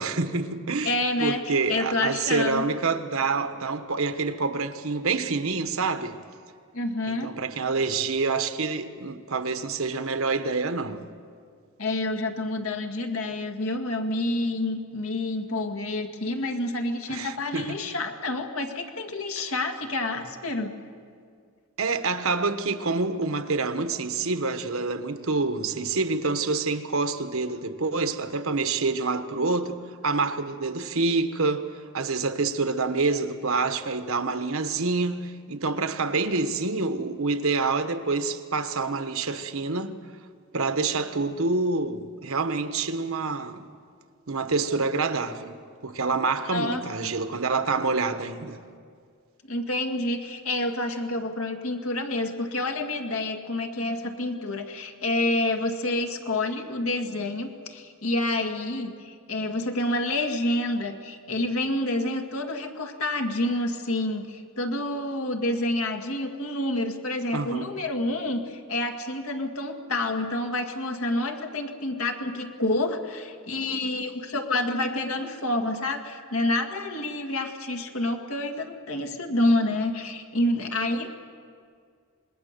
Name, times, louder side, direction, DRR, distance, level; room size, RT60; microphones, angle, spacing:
voice 1, 0.0-0.9 1.2-6.2 7.0-11.0 17.1-17.8 19.4-19.5 21.8-31.7 31.9-39.9 40.5-43.7 44.3-48.6 67.3-67.7, right 3 dB, 70° right, 1.1 m, -27 dB
voice 2, 0.8-2.6 6.7-7.3 11.8-20.8 46.5-47.1 49.5-81.1, left 2 dB, 75° left, 2.0 m, -28 dB
26.0 x 21.0 x 6.7 m
head